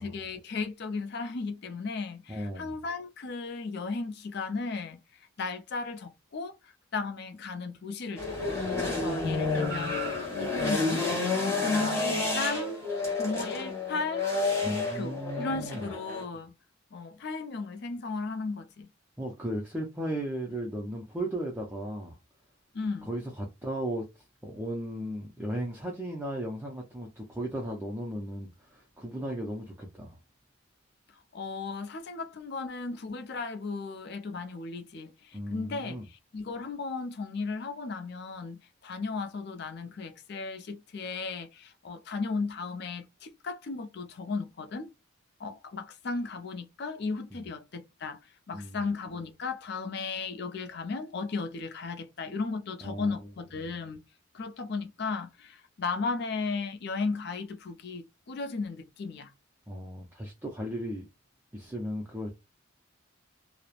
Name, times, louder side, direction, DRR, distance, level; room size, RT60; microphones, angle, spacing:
voice 1, 0.0-5.0 5.4-8.5 8.9-11.2 11.6-12.8 13.2-14.3 14.6-16.5 16.9-18.9 22.7-23.1 31.3-44.9 45.4-48.2 48.5-54.0 54.3-59.3, left 4 dB, 50° left, 0.4 m, -35 dB
voice 2, 2.3-2.7 14.6-15.9 19.2-22.2 23.1-24.1 24.4-30.2 35.3-36.1 47.3-47.4 48.5-48.8 52.8-53.3 53.6-53.7 59.7-61.1 61.5-62.3, right 1 dB, 10° right, 0.4 m, -36 dB
sound 1, 8.2-16.2, left 3 dB, 15° left, 1.0 m, -30 dB
2.9 x 2.0 x 2.4 m
head